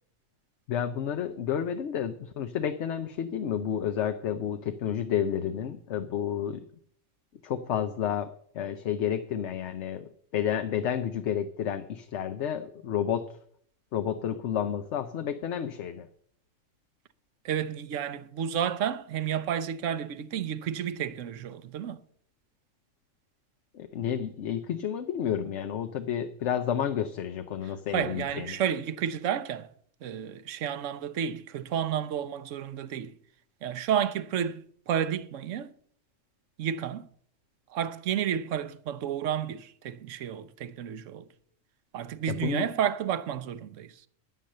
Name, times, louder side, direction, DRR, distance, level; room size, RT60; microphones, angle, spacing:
voice 1, 0.7-6.6 7.4-13.4 13.9-16.1 23.7-28.6 42.3-42.7, left 9 dB, 65° left, 1.0 m, -31 dB
voice 2, 17.4-22.0 27.9-29.7 30.0-33.1 33.6-35.7 36.6-37.1 37.7-41.2 41.9-43.9, right 9 dB, 75° right, 1.1 m, -31 dB
10.0 x 9.4 x 6.6 m
omnidirectional pair, 1.4 m